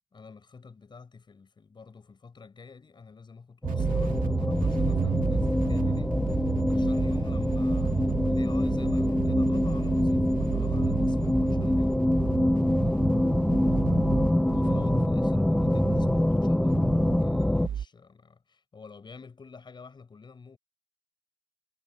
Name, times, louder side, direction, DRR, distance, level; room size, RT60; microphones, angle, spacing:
voice 1, 0.1-12.0 12.7-13.1 14.4-16.9 17.2-20.6, left 5 dB, 20° left, 6.9 m, -49 dB
sound 1, 3.6-17.7, left 1 dB, 5° left, 0.7 m, -25 dB
sound 2, 3.6-17.9, right 9 dB, 40° right, 1.6 m, -33 dB
cardioid pair, 140°, 21 cm